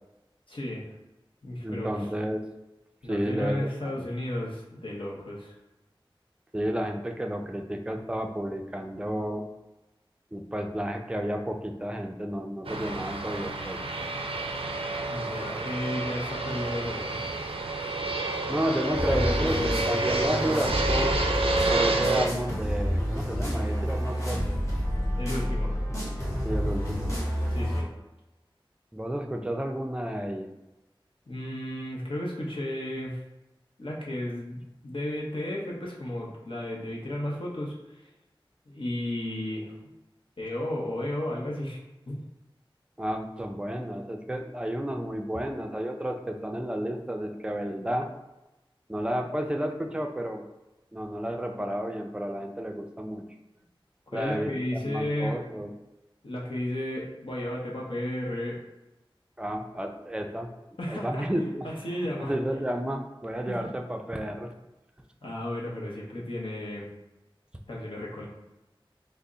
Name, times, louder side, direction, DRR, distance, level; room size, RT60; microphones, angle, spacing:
voice 1, 0.5-0.9 1.4-1.9 3.0-5.5 15.1-17.2 19.1-20.7 25.1-25.8 27.5-27.9 31.3-33.2 33.8-38.1 38.7-39.7 40.4-42.2 54.1-55.4 56.2-58.6 60.8-62.3 63.5-63.7 65.2-66.9 67.7-68.3, left 1 dB, 70° left, -3 dB, 0.7 m, -33 dB
voice 2, 1.6-2.4 3.1-3.7 4.0-4.1 6.5-9.5 10.3-13.8 18.5-21.2 21.7-24.6 26.4-27.1 28.9-30.5 43.0-48.1 48.9-50.4 50.9-53.2 54.1-55.7 59.4-60.5 60.9-61.7 62.3-64.5, equal, 10° right, 3 dB, 0.4 m, -31 dB
Fixed-wing aircraft airplane, 12.6-22.3, right 2 dB, 90° right, 0.4 m, -29 dB
sound 1, 18.9-27.8, equal, 35° left, 1.2 m, -29 dB
3.4 x 2.0 x 3.8 m, 1.0 s
wide cardioid pair, 55°, 9 cm